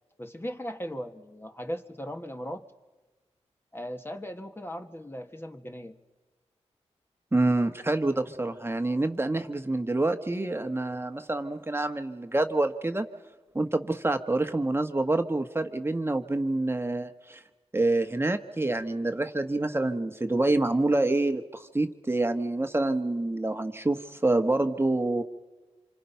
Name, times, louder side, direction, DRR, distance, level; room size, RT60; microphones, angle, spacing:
voice 1, 0.2-2.6 3.7-6.0, equal, 20° left, 5 dB, 1.8 m, -38 dB
voice 2, 7.3-13.1 13.5-17.4 17.7-25.2, right 2 dB, 20° right, 7 dB, 1.4 m, -27 dB
27.0 x 25.0 x 5.8 m, 1.2 s
cardioid pair, 55°, 12 cm